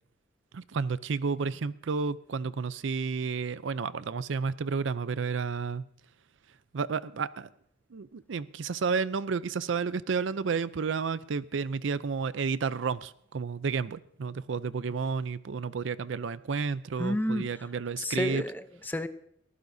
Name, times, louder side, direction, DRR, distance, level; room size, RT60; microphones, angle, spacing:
voice 1, 0.5-5.8 6.7-7.5 7.9-18.4, right 5 dB, 70° right, 16 dB, 0.5 m, -31 dB
voice 2, 17.0-17.5 18.0-19.1, left 1 dB, 10° left, 10 dB, 0.6 m, -30 dB
21.5 x 15.0 x 2.7 m, 0.68 s
head